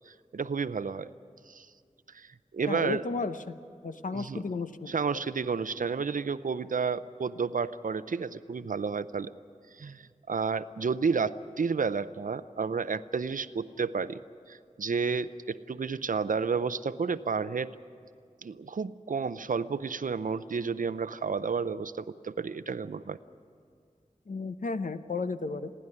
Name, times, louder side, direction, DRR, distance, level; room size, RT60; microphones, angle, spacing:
voice 1, 0.1-1.1 1.5-1.7 2.1-3.0 4.1-4.4 4.9-9.3 9.8-14.2 14.5-17.7 18.4-23.2, right 5 dB, 80° right, 14 dB, 0.6 m, -31 dB
voice 2, 2.7-3.6 3.8-5.0 24.3-25.7, left 3 dB, 75° left, 10 dB, 0.8 m, -33 dB
29.5 x 11.0 x 9.9 m, 2.2 s
wide cardioid pair, 70°, 14 cm